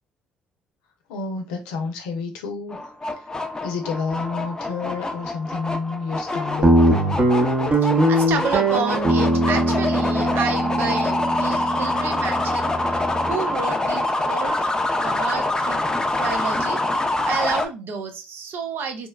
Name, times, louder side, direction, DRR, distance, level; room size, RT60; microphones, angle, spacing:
voice 1, 1.1-2.9 3.2-3.3 3.6-7.3, left 4 dB, 85° left, 0.5 m, -30 dB
sound 1, 2.7-17.7, left 2 dB, 15° left, 0.5 m, -25 dB
Guitar, 6.6-13.3, right 1 dB, 30° right, 0.8 m, -21 dB
voice 2, 7.8-14.7 15.0-15.8 16.1-16.8 17.2-19.1, right 5 dB, 60° right, 0.6 m, -30 dB
2.9 x 2.1 x 2.2 m
hypercardioid pair, 55°, 4 cm